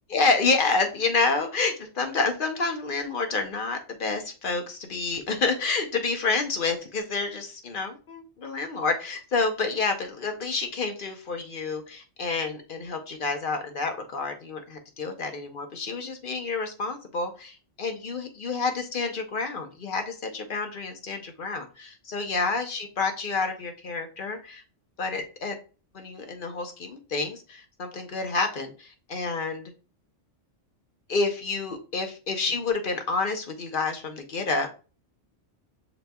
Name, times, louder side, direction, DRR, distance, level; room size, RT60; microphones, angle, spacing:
voice 1, 0.1-24.6 25.0-25.6 25.9-29.7 31.1-34.7, left 4 dB, 50° left, 6 dB, 0.8 m, -29 dB
6.0 x 3.9 x 2.2 m, 0.34 s
omnidirectional pair, 1.2 m